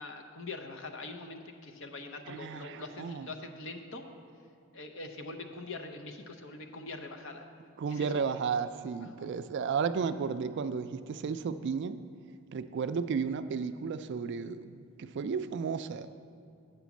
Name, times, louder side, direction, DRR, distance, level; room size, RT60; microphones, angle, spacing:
voice 1, 0.0-4.0 4.7-7.4 7.9-8.1 9.0-9.3, left 2 dB, 60° left, 5 dB, 0.7 m, -43 dB
voice 2, 2.3-3.3 7.8-12.0 12.5-16.1, right 6 dB, 50° right, 11 dB, 0.3 m, -33 dB
8.2 x 5.1 x 7.1 m, 2.4 s
head